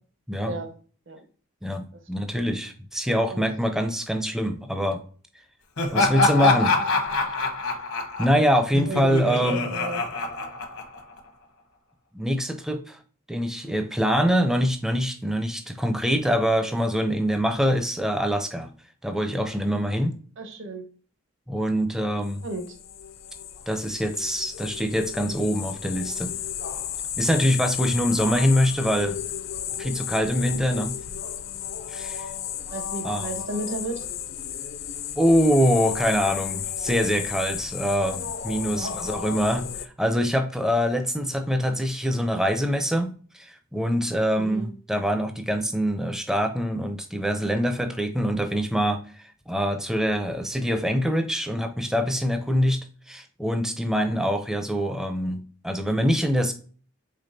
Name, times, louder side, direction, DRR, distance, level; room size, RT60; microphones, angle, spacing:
voice 1, 1.6-5.0 5.9-6.8 8.2-9.7 12.1-13.0 13.3-18.7 19.0-20.2 21.5-22.4 23.7-26.3 27.2-29.2 29.8-30.9 31.9-32.3 33.0-33.3 35.2-52.8 53.1-56.5, equal, ahead, 6 dB, 0.4 m, -24 dB
Laughter, 5.8-11.2, left 3 dB, 75° left, 1.0 m, -25 dB
voice 2, 8.9-10.0 20.4-20.8 22.4-22.8 32.7-34.1 38.7-39.0 44.3-44.7, right 2 dB, 60° right, 6 dB, 0.8 m, -33 dB
sound 1, 22.2-39.9, left 9 dB, 60° left, 0.5 m, -33 dB
5.2 x 3.6 x 2.6 m, 0.42 s
head